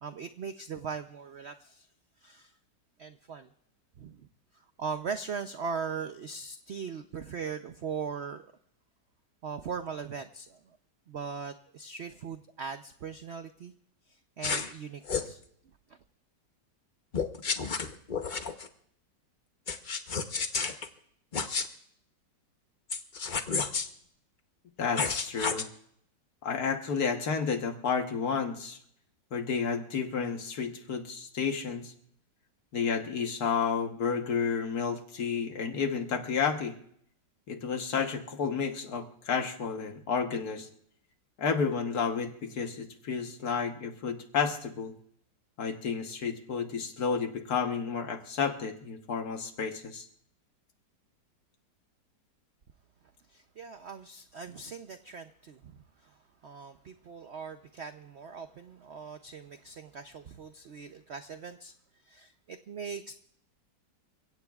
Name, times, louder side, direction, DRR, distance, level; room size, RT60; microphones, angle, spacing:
voice 1, 0.0-1.9 2.2-2.5 3.0-3.5 4.0-4.3 4.8-8.4 9.4-10.8 11.1-13.7 14.1-15.4 53.3-61.7 62.0-63.1, right 6 dB, 65° right, 8 dB, 0.6 m, -40 dB
sound 1, 14.4-14.7 15.1-15.3 17.1-18.7 19.7-20.9 21.3-21.7 22.9-23.9 25.0-25.6, left 5 dB, 40° left, 0.7 m, -31 dB
voice 2, 24.8-25.6 26.4-28.8 29.3-31.9 32.7-36.7 37.5-40.7 41.4-44.9 45.6-50.0, left 6 dB, 60° left, 5 dB, 1.6 m, -31 dB
29.0 x 16.5 x 2.4 m, 0.68 s
omnidirectional pair, 1.9 m